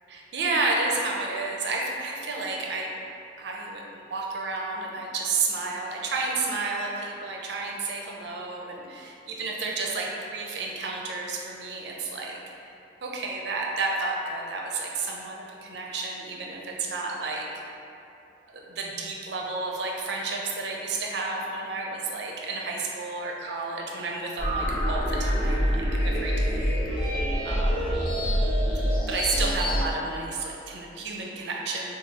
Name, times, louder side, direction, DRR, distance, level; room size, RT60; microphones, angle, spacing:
voice 1, 0.1-2.9 3.4-12.4 13.0-17.5 18.5-28.0 29.1-32.0, right 3 dB, 60° right, -1 dB, 0.5 m, -31 dB
sound 1, 24.4-29.8, equal, 25° left, 0.6 m, -25 dB
4.5 x 2.3 x 2.7 m, 2.8 s
head